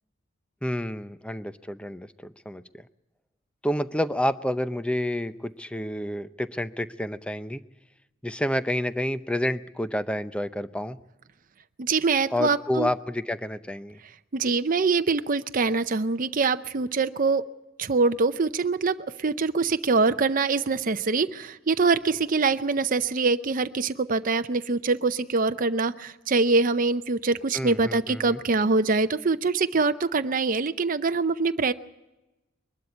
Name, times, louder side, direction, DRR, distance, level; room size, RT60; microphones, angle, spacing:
voice 1, 0.6-2.6 3.6-7.6 8.2-11.0 12.3-14.0 27.5-28.4, left 1 dB, 5° left, 12 dB, 0.6 m, -29 dB
voice 2, 11.8-12.9 14.3-17.4 17.8-31.7, right 4 dB, 45° right, 10 dB, 0.6 m, -24 dB
22.0 x 12.5 x 9.6 m, 1.0 s
head